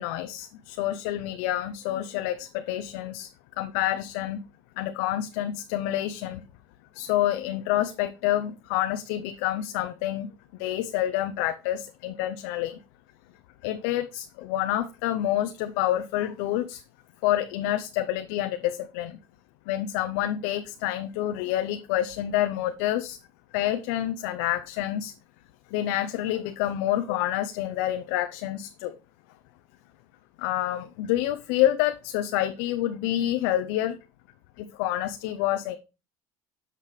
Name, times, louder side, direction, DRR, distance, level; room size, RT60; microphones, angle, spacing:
voice 1, 0.0-3.3 3.6-4.4 4.8-6.4 6.9-10.3 10.6-12.8 13.6-16.8 17.2-19.2 19.7-23.2 23.5-25.1 25.7-29.0 30.4-34.0 34.6-35.8, left 13 dB, 90° left, 0.5 m, -28 dB
7.4 x 6.6 x 3.1 m
supercardioid pair, 105°, 9 cm